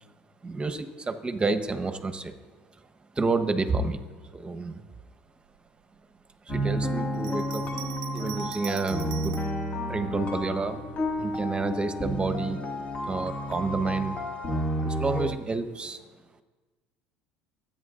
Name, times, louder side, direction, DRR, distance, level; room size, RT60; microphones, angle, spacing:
voice 1, 0.4-2.3 3.2-4.0 4.3-4.8 6.5-7.7 8.1-9.3 9.9-10.8 11.2-12.6 13.1-14.2 14.8-16.0, right 3 dB, 25° right, 10 dB, 1.1 m, -29 dB
sound 1, 6.5-15.3, equal, 35° left, 2.0 m, -31 dB
Bell, 7.1-9.6 10.3-11.2, right 17 dB, 80° right, 0.5 m, -43 dB
24.0 x 9.1 x 2.6 m, 1.4 s
supercardioid pair, 85°, 4 cm